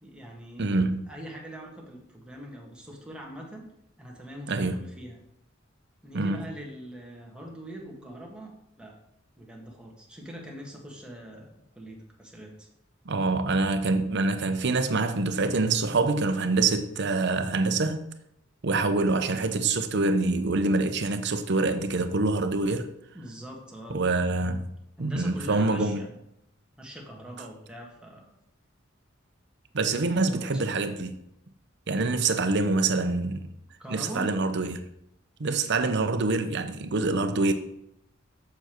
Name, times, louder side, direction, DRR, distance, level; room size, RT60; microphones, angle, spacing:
voice 1, 0.0-0.8 1.1-3.7 4.0-5.2 6.0-8.9 9.4-12.7 18.6-18.9 23.1-24.0 25.0-26.2 26.8-28.3 30.0-30.7 33.8-34.3, equal, 5° right, 1.6 m, -42 dB
voice 2, 0.6-1.0 4.5-4.8 6.1-6.4 13.1-18.1 18.6-22.9 23.9-24.7 25.0-26.0 29.7-31.2 31.9-33.5 33.9-34.8 35.4-37.5, right 3 dB, 60° right, 0.7 m, -25 dB
7.0 x 6.7 x 4.5 m
head